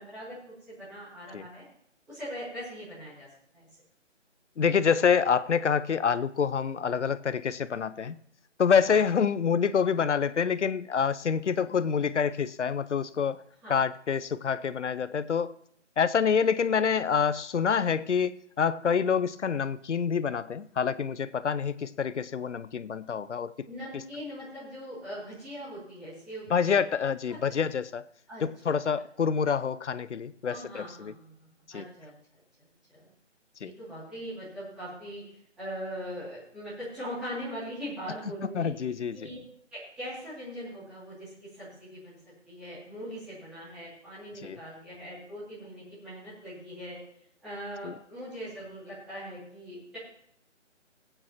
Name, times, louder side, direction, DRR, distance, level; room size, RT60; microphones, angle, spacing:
voice 1, 0.0-1.6 2.1-3.3 3.5-3.7 8.9-9.0 13.6-13.8 23.6-26.8 27.3-27.6 28.3-28.8 30.5-32.1 32.6-33.1 33.6-35.2 35.6-38.7 39.1-39.4 39.7-42.2 42.4-47.0 47.4-50.0, equal, ahead, -14 dB, 2.6 m, -41 dB
voice 2, 4.6-8.2 8.6-13.4 13.7-15.5 16.0-23.7 23.9-24.0 26.5-28.0 28.4-31.1 31.7-31.8 33.6-33.7 38.5-39.3 44.4-44.6 47.8-47.9, left 6 dB, 70° left, 16 dB, 0.6 m, -27 dB
19.5 x 8.8 x 3.0 m, 0.67 s
figure-of-eight pair, 175°, 37 cm